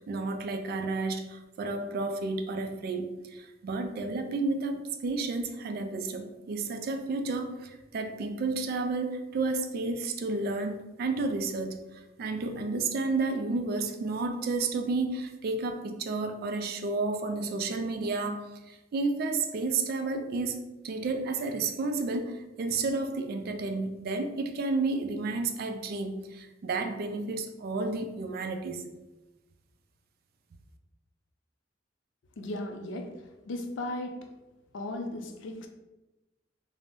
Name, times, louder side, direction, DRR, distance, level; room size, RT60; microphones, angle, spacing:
voice 1, 0.0-28.8, right 3 dB, 50° right, 6 dB, 0.3 m, -31 dB
voice 2, 32.4-34.3 34.7-35.7, left 1 dB, 75° left, 5 dB, 0.4 m, -36 dB
2.5 x 2.0 x 3.5 m, 1.0 s
head